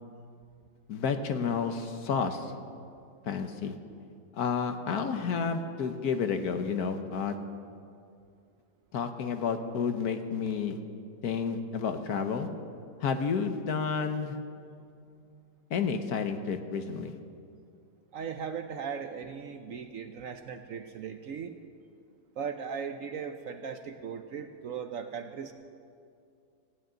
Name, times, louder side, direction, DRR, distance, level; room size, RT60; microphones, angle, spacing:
voice 1, 0.9-2.5 3.2-3.7 4.3-7.4 8.9-10.8 11.2-12.5 13.0-14.4 15.7-17.1, left 6 dB, 65° left, 7 dB, 1.4 m, -30 dB
voice 2, 18.1-21.5 22.4-25.5, right 6 dB, 65° right, 7 dB, 0.9 m, -38 dB
15.0 x 9.3 x 8.9 m, 2.4 s
omnidirectional pair, 1.8 m